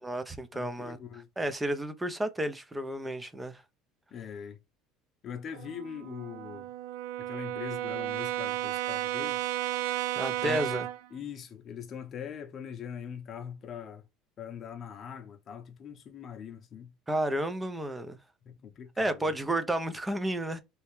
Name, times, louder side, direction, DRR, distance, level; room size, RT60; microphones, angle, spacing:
voice 1, 0.0-1.0 1.4-3.6 10.2-10.9 17.1-18.2 19.0-20.6, right 1 dB, 5° right, 0.5 m, -31 dB
voice 2, 0.5-1.3 4.1-4.6 5.2-6.7 7.2-9.4 10.3-10.8 11.1-14.0 14.4-16.9 18.4-19.3, left 8 dB, 30° left, 0.7 m, -42 dB
Brass instrument, 5.5-11.1, right 13 dB, 85° right, 0.4 m, -33 dB
3.2 x 2.9 x 3.1 m
cardioid pair, 165°, 0 cm